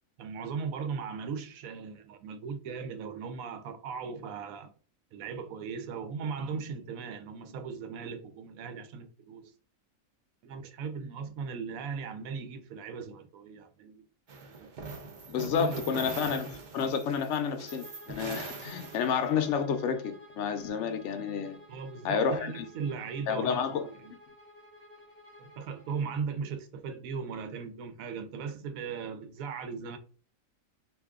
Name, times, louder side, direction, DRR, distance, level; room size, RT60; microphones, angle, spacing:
voice 1, 0.2-4.7 5.1-9.5 10.4-14.0 14.6-14.7 15.4-16.1 21.7-24.1 25.4-30.0, right 5 dB, 80° right, 1.0 m, -38 dB
sound 1, 14.3-19.5, right 4 dB, 55° right, 0.5 m, -42 dB
voice 2, 15.3-16.5 16.7-21.6 22.0-22.7 23.3-23.8, left 7 dB, 70° left, 0.8 m, -30 dB
Bowed string instrument, 17.7-26.2, left 1 dB, 20° left, 0.7 m, -53 dB
2.6 x 2.3 x 3.5 m
omnidirectional pair, 1.4 m